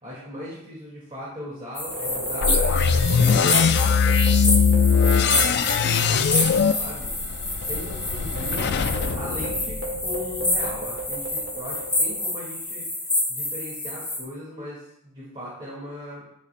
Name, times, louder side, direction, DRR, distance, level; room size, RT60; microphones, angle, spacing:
voice 1, 0.0-8.8 9.1-16.3, left 1 dB, 25° right, -8 dB, 2.0 m, -39 dB
sound 1, 1.7-14.2, left 2 dB, 5° left, 1.6 m, -28 dB
sound 2, 1.8-6.6 6.9-7.0 7.6-12.4, right 2 dB, 50° right, 1.6 m, -35 dB
sound 3, 2.4-10.3, left 6 dB, 50° left, 0.4 m, -21 dB
11.0 x 5.3 x 2.2 m, 0.80 s
head